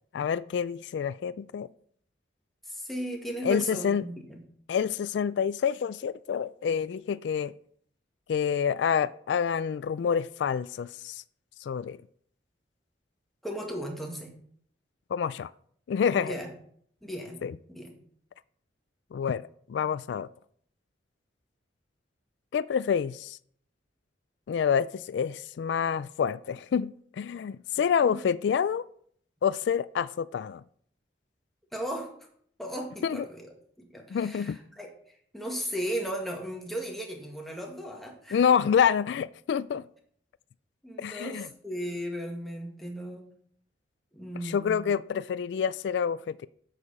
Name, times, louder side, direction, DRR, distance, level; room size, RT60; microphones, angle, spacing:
voice 1, 0.1-1.7 3.4-4.0 4.7-7.5 8.3-11.2 11.6-12.0 15.1-15.5 15.9-16.3 17.4-17.5 19.1-20.3 22.5-23.4 24.5-26.9 27.2-28.8 29.4-30.6 33.0-33.2 34.1-34.6 38.3-39.8 41.0-41.5 44.4-46.5, left 7 dB, 70° left, 0.3 m, -27 dB
voice 2, 2.6-4.4 13.4-14.4 16.1-16.5 17.0-17.9 28.0-28.2 31.7-32.1 32.6-33.5 33.8-34.9 35.3-38.4 40.8-43.3 44.1-44.8, equal, ahead, 1.7 m, -36 dB
8.6 x 6.6 x 5.4 m
head